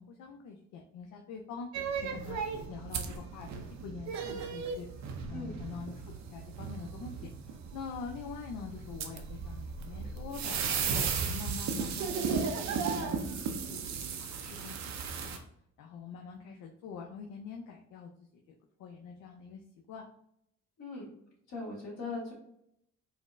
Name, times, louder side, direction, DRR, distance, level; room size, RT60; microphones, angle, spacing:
voice 1, 0.0-2.4 2.7-4.9 5.3-10.6 10.9-13.8 14.2-14.9 15.2-15.5 15.8-18.3 18.8-19.6 19.9-20.1, left 5 dB, 75° left, 1 dB, 0.5 m, -45 dB
sound 1, 1.7-15.4, right 5 dB, 65° right, 0.5 m, -35 dB
voice 2, 20.8-21.1 21.5-22.3, left 3 dB, 60° left, -3 dB, 1.4 m, -39 dB
4.0 x 2.0 x 2.4 m, 0.73 s
cardioid pair, 90°, 30 cm